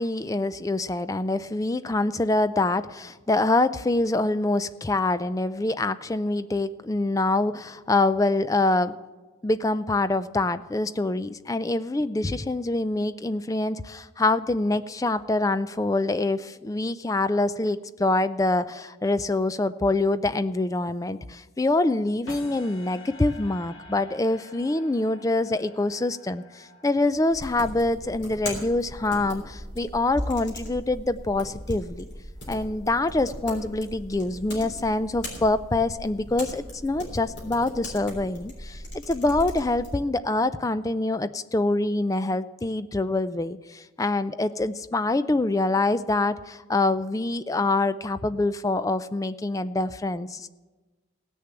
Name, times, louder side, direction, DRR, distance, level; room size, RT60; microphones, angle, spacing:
voice 1, 0.0-8.9 9.4-32.1 32.5-50.5, left 2 dB, 15° left, 13 dB, 0.3 m, -25 dB
sound 1, 22.3-27.5, left 2 dB, 75° left, 1.7 m, -48 dB
sound 2, 27.3-40.0, equal, 55° left, 3.7 m, -38 dB
16.5 x 6.7 x 8.9 m, 1.2 s
head